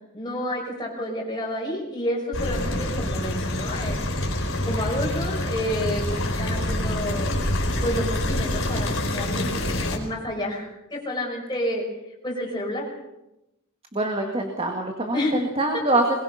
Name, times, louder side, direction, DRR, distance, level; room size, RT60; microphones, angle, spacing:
voice 1, 0.1-4.0 4.6-7.3 7.8-11.9 12.2-12.9 15.1-15.3, left 1 dB, 20° left, -1 dB, 5.7 m, -30 dB
sound 1, 2.3-10.0, left 1 dB, 65° left, 4.7 m, -26 dB
voice 2, 13.9-16.2, right 2 dB, 25° right, 2 dB, 2.0 m, -24 dB
22.0 x 21.5 x 5.9 m, 0.93 s
head